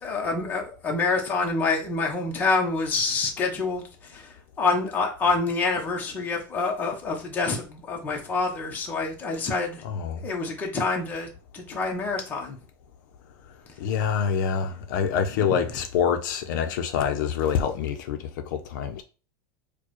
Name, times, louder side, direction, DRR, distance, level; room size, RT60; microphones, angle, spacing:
voice 1, 0.0-9.9 10.2-12.6 15.2-15.7, left 3 dB, 15° left, 0.7 m, -27 dB
voice 2, 9.8-10.2 13.8-18.2 18.5-19.0, left 7 dB, 60° left, 0.6 m, -26 dB
4.5 x 2.2 x 3.0 m
supercardioid pair, 170°, 11 cm